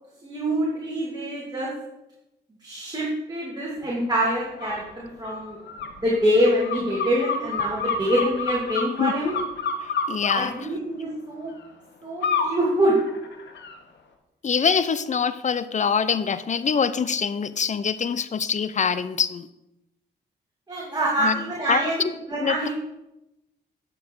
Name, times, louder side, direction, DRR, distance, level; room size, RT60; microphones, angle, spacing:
voice 1, 0.2-1.7 2.6-5.6 6.0-9.4 10.3-11.5 12.0-13.0 20.7-22.7, equal, 20° right, -5 dB, 2.5 m, -25 dB
sound 1, 4.6-4.8 5.2-10.4 12.2-12.5 13.0-13.7, left 5 dB, 80° left, 1.2 m, -28 dB
voice 2, 9.0-9.4 9.8-10.5 14.4-19.5 21.2-21.4 21.7-22.1 22.4-22.7, left 6 dB, 40° left, 14 dB, 0.5 m, -24 dB
10.0 x 6.1 x 4.6 m, 0.92 s
cardioid pair, 70°, 18 cm